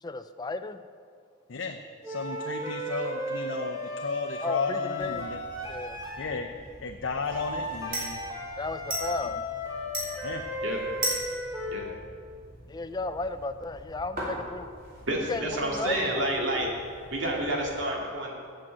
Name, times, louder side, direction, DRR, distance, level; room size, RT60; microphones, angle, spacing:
voice 1, 0.0-0.8 4.4-5.3 5.7-6.0 8.6-9.4 12.7-14.7 15.3-16.2, left 3 dB, 20° left, 10 dB, 0.4 m, -34 dB
voice 2, 2.0-5.4 6.2-6.5 6.8-8.2 9.3-9.4 10.2-10.4, left 4 dB, 65° left, 4 dB, 0.6 m, -33 dB
sound 1, 2.0-6.3 7.2-11.9, equal, 20° right, 1.9 m, -35 dB
sound 2, 5.0-17.8, right 1 dB, 45° right, 3.2 m, -40 dB
voice 3, 15.1-16.7 17.1-18.3, right 1 dB, 65° right, -1 dB, 2.2 m, -29 dB
8.6 x 7.7 x 7.7 m, 2.2 s
head